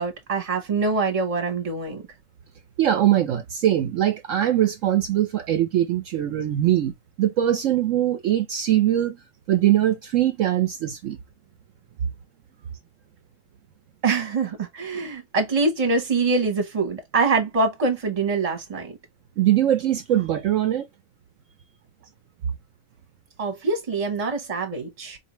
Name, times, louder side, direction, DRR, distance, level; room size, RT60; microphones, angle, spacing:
voice 1, 0.0-2.0 14.0-19.0 23.4-25.2, right 3 dB, 30° right, 0.9 m, -24 dB
voice 2, 2.8-9.2 9.5-11.2 19.4-20.9, right 12 dB, 65° right, 0.8 m, -22 dB
4.1 x 2.7 x 2.9 m
omnidirectional pair, 1.6 m